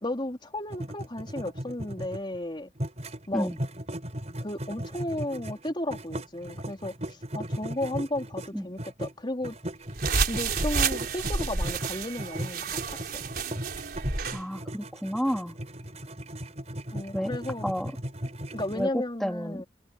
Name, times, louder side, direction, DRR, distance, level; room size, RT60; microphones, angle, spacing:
voice 1, 0.0-2.7 3.3-3.5 4.4-9.5 10.3-13.2 16.9-17.7 18.5-19.6, left 1 dB, 25° left, 3.4 m, -34 dB
sound 1, 0.7-2.4 2.7-9.1 9.4-18.8, equal, 35° right, 5.5 m, -37 dB
sound 2, 10.0-14.4, right 4 dB, 55° right, 4.1 m, -30 dB
voice 2, 14.3-15.6 17.1-17.3 17.6-17.9 18.7-18.9 19.2-19.6, equal, ahead, 3.5 m, -30 dB
open air
head